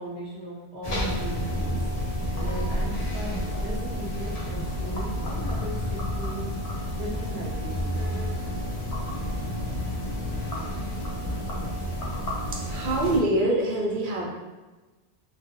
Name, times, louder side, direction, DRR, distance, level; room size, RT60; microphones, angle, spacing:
voice 1, 0.0-1.7 2.4-6.5 6.9-7.9, right 1 dB, 10° left, -12 dB, 1.0 m, -37 dB
sound 1, 0.8-13.2, left 1 dB, 50° left, 0.5 m, -30 dB
voice 2, 12.5-14.3, right 1 dB, 60° right, -2 dB, 0.6 m, -25 dB
2.3 x 2.3 x 2.8 m, 1.2 s
omnidirectional pair, 1.1 m